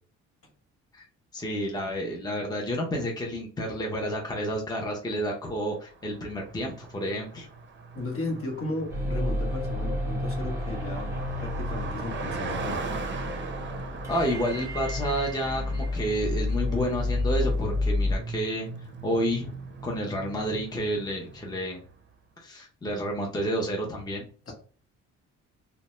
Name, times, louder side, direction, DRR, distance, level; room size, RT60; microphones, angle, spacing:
voice 1, 1.3-7.5 14.1-18.7 19.0-19.5 19.8-21.8 22.4-24.5, equal, 15° left, 0 dB, 0.7 m, -30 dB
Car passing by, 5.9-21.9, right 4 dB, 40° right, 0.5 m, -40 dB
voice 2, 7.9-11.1 11.4-12.8 24.5-24.6, left 2 dB, 45° left, 1 dB, 1.1 m, -35 dB
sound 1, 8.9-18.2, left 2 dB, 10° right, 1.0 m, -30 dB
2.5 x 2.2 x 3.0 m, 0.40 s
cardioid pair, 90°, 30 cm